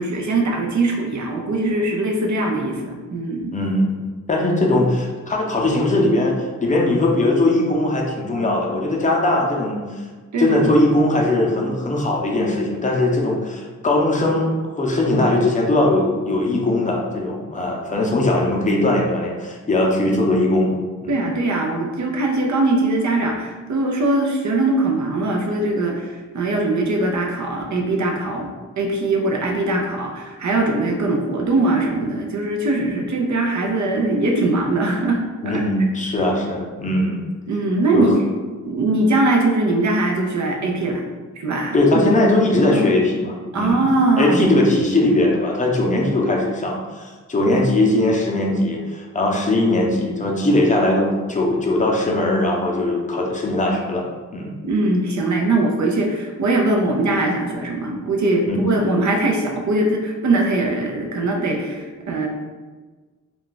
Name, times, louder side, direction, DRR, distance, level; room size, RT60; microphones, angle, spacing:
voice 1, 0.0-3.5 10.3-10.6 21.1-35.6 37.5-38.1 38.6-41.0 41.4-42.1 42.7-43.0 43.5-44.6 54.6-62.3, right 2 dB, 70° right, 1 dB, 0.6 m, -21 dB
voice 2, 3.5-4.0 4.3-10.0 10.4-20.7 21.0-21.2 35.4-37.2 37.9-38.1 41.7-43.9 44.2-54.1 54.3-54.5 58.5-58.7, left 1 dB, 25° left, -1 dB, 0.5 m, -20 dB
2.4 x 2.3 x 3.8 m, 1.4 s
wide cardioid pair, 110°, 30 cm